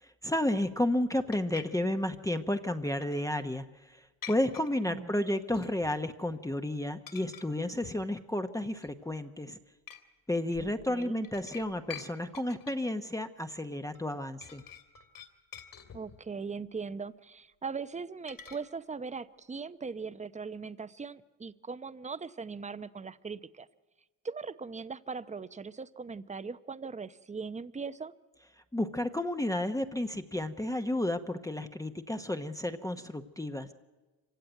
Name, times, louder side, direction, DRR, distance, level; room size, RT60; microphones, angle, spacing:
voice 1, 0.2-9.6 10.3-14.6 28.7-33.7, left 1 dB, 5° left, 6 dB, 1.0 m, -32 dB
sound 1, 1.3-1.6 3.0-3.4 4.2-4.7 5.5-6.0 6.3-6.6 7.1-7.5 7.8-8.1 8.6-9.1 9.9-10.0 10.5-12.1 12.3-12.9 13.9-14.1 14.4-16.3 18.3-18.6, left 9 dB, 45° left, 2.6 m, -47 dB
voice 2, 10.6-11.2 15.9-23.7 24.2-28.1, right 5 dB, 15° right, 14 dB, 0.8 m, -40 dB
25.5 x 16.0 x 9.2 m, 1.2 s
cardioid pair, 100°, 44 cm